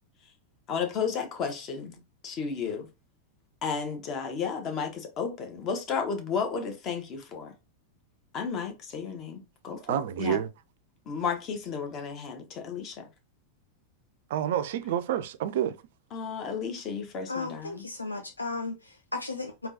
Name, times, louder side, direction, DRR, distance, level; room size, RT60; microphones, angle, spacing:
voice 1, 0.7-2.9 3.6-7.5 8.3-10.4 11.1-13.1 16.1-17.9, left 6 dB, 35° left, 0.9 m, -33 dB
voice 2, 9.9-10.5 14.3-15.8, right 10 dB, 55° right, 0.3 m, -28 dB
voice 3, 17.3-19.7, left 3 dB, 80° left, 0.4 m, -35 dB
3.6 x 2.8 x 2.6 m
figure-of-eight pair, 90°, 0 cm